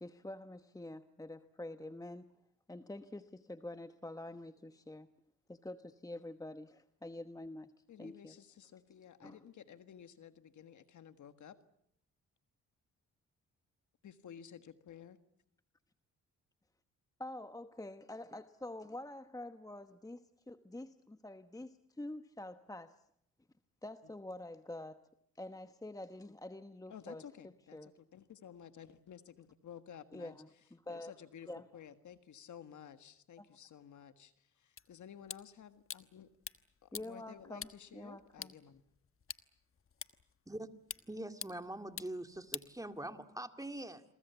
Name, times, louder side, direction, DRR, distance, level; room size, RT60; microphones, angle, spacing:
voice 1, 0.0-2.3 2.7-5.1 5.5-8.3 9.2-9.4 17.2-23.0 23.8-27.2 27.7-27.9 30.1-30.3 30.9-31.1 31.5-31.6 36.9-38.5, left 1 dB, 10° left, 10 dB, 1.1 m, -47 dB
voice 2, 7.9-11.6 14.0-15.2 24.0-24.1 26.9-36.3 36.8-38.8, left 8 dB, 70° left, 10 dB, 1.7 m, -54 dB
sound 1, 34.8-43.4, left 7 dB, 45° left, 1.2 m, -50 dB
voice 3, 41.1-44.0, right 1 dB, 10° right, 8 dB, 2.1 m, -43 dB
29.0 x 23.0 x 7.0 m, 0.75 s
cardioid pair, 70°, 31 cm